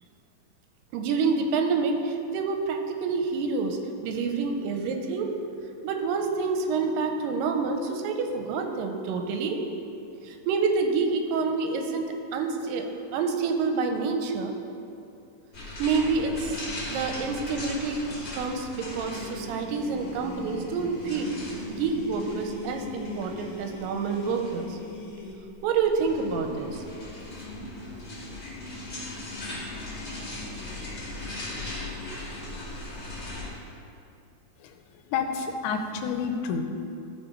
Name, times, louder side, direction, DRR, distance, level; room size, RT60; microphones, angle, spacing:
voice 1, 0.9-3.8 4.0-5.3 5.8-9.6 10.2-12.0 12.3-14.5 15.8-16.6 16.9-21.3 21.7-24.8 25.6-26.8, right 4 dB, 85° right, 5 dB, 2.4 m, -28 dB
sound 1, 15.5-33.5, left 2 dB, 40° left, 1.4 m, -39 dB
sound 2, 19.1-25.3, left 2 dB, 55° left, 1.5 m, -41 dB
voice 2, 35.0-36.6, left 5 dB, 80° left, 5 dB, 2.2 m, -29 dB
13.0 x 4.6 x 4.4 m, 2.6 s
omnidirectional pair, 3.9 m